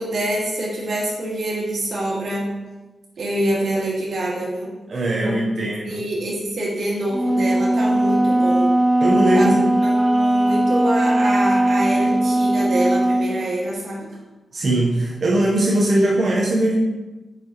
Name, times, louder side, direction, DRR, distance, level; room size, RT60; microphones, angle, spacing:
voice 1, 0.0-2.5 3.2-4.7 5.2-8.7 9.3-14.1, right 1 dB, 70° right, -5 dB, 1.7 m, -25 dB
voice 2, 4.9-6.0 9.0-9.6 14.5-16.8, right 1 dB, 45° right, -2 dB, 0.8 m, -20 dB
Wind instrument woodwind instrument, 7.1-13.4, right 1 dB, 10° right, 0.5 m, -19 dB
6.0 x 5.8 x 2.9 m, 1.1 s
wide cardioid pair, 125°, 0 cm